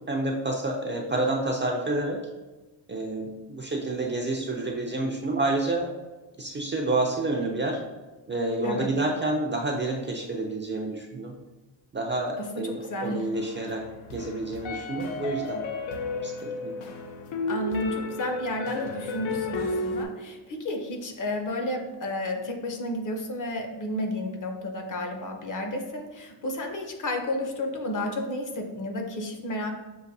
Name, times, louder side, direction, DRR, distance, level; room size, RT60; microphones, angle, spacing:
voice 1, 0.1-2.2 2.9-5.9 6.4-7.8 8.3-11.3 11.9-13.8 14.1-15.6 16.2-16.8, right 2 dB, 25° right, 0 dB, 0.4 m, -29 dB
voice 2, 12.4-13.3 17.5-29.7, left 1 dB, 45° left, 4 dB, 0.7 m, -32 dB
sound 1, 13.3-20.0, left 3 dB, 85° left, 0.7 m, -33 dB
6.5 x 2.5 x 2.6 m, 1.2 s
cardioid pair, 110°, 46 cm